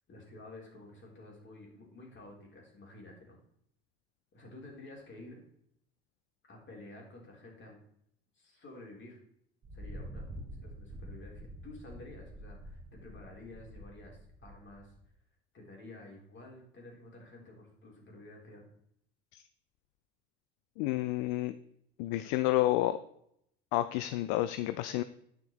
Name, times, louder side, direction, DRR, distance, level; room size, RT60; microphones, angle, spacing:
voice 1, 0.1-3.4 4.3-5.4 6.5-7.8 8.3-9.2 9.7-10.3 10.6-14.9 15.5-18.7, left 2 dB, 40° left, 0 dB, 4.0 m, -51 dB
Thunder, 9.6-15.1, right 1 dB, 30° right, 2.6 m, -47 dB
voice 2, 20.8-21.5 22.0-23.0 23.7-25.0, left 15 dB, 65° left, 13 dB, 0.6 m, -30 dB
9.3 x 6.1 x 4.6 m, 0.71 s
hypercardioid pair, 65°, 30 cm